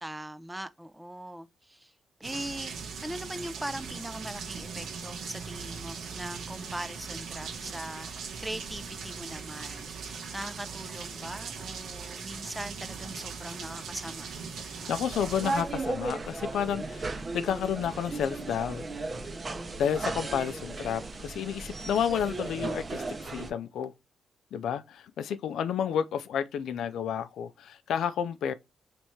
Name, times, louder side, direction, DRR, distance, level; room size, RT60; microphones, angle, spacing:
voice 1, 0.0-1.9 2.2-14.3 20.8-21.1, right 1 dB, 5° right, 0.4 m, -40 dB
sound 1, 2.2-15.6, right 5 dB, 85° right, 1.2 m, -40 dB
voice 2, 14.6-18.8 19.8-23.9 24.5-28.5, left 8 dB, 85° left, 0.4 m, -31 dB
sound 2, 15.1-23.5, right 3 dB, 35° right, 0.7 m, -35 dB
3.3 x 3.1 x 4.1 m
cardioid pair, 110°, 0 cm